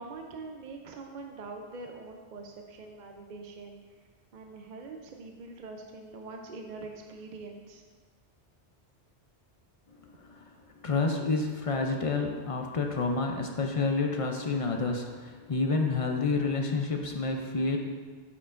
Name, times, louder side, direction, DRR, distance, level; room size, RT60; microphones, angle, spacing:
voice 1, 0.0-3.8 4.3-7.8, right 3 dB, 50° right, 3 dB, 0.6 m, -43 dB
voice 2, 10.8-17.8, left 3 dB, 40° left, 3 dB, 0.5 m, -29 dB
8.3 x 6.7 x 2.5 m, 1.5 s
omnidirectional pair, 1.2 m